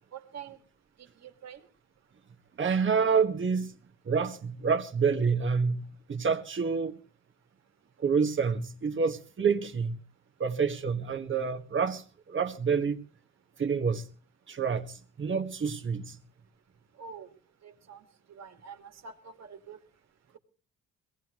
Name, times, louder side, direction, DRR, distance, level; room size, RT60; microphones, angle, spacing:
voice 1, 0.1-0.6 1.0-1.6 17.0-17.3 17.6-19.8, right 6 dB, 60° right, 2.4 m, -46 dB
voice 2, 2.6-3.8 4.1-6.9 8.0-10.0 10.4-13.0 13.6-14.1 14.5-16.2, right 5 dB, 40° right, 1.8 m, -28 dB
22.5 x 18.0 x 3.1 m
cardioid pair, 90°, 30 cm